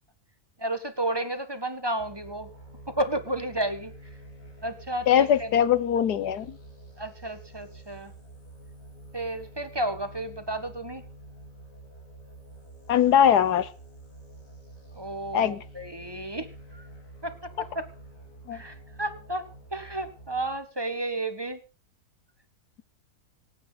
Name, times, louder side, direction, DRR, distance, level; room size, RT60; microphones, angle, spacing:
voice 1, 0.6-2.5 2.9-3.9 4.6-5.5 7.0-8.1 9.1-11.0 14.9-16.5 16.7-16.9 17.2-17.9 18.5-19.4 19.7-21.6, right 1 dB, 15° right, 9 dB, 1.3 m, -32 dB
sound 1, 2.0-20.6, right 2 dB, 75° left, 4.5 m, -48 dB
voice 2, 5.1-6.6 12.9-13.7 15.3-15.6 18.5-18.6, left 9 dB, 90° left, 16 dB, 1.5 m, -21 dB
26.0 x 9.2 x 4.1 m, 0.34 s
omnidirectional pair, 1.7 m